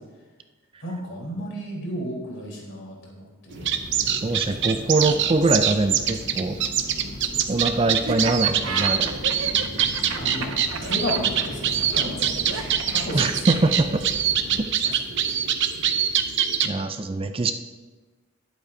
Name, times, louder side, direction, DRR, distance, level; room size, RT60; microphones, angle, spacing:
voice 1, 0.8-3.7 9.2-10.5 10.8-13.6 14.8-15.5 16.6-17.1, left 1 dB, 60° left, -3 dB, 3.9 m, -34 dB
sound 1, 3.5-14.7, left 2 dB, 35° left, 0.6 m, -39 dB
sound 2, 3.5-16.7, right 8 dB, 60° right, 0.8 m, -25 dB
voice 2, 4.1-6.6 7.5-9.2 13.1-14.0 14.6-14.9 16.6-17.5, right 2 dB, 25° right, 8 dB, 0.4 m, -23 dB
Laughter, 8.0-13.8, right 4 dB, 85° right, 1.0 m, -32 dB
20.0 x 8.3 x 2.7 m, 1.3 s
head